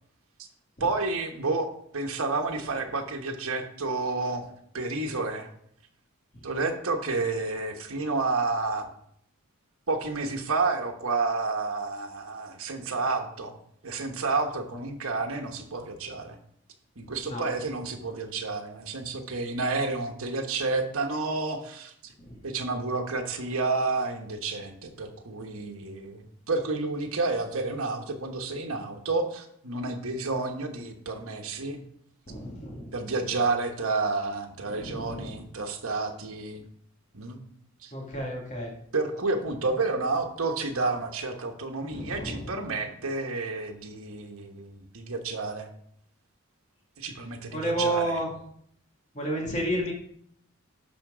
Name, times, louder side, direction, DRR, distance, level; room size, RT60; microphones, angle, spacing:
voice 1, 0.8-1.7 1.9-4.5 4.7-5.5 6.4-8.9 9.9-13.6 13.8-16.4 17.0-21.9 22.4-31.8 32.9-36.6 37.1-37.4 37.8-37.9 38.9-45.7 47.0-48.2, right 3 dB, 75° right, 4 dB, 1.2 m, -30 dB
voice 2, 17.0-17.4 22.2-22.4 32.3-32.9 34.7-35.4 37.9-38.7 41.9-42.6 47.5-48.3 49.1-49.9, right 1 dB, 35° left, -1 dB, 1.9 m, -31 dB
11.5 x 4.4 x 5.0 m, 0.68 s
head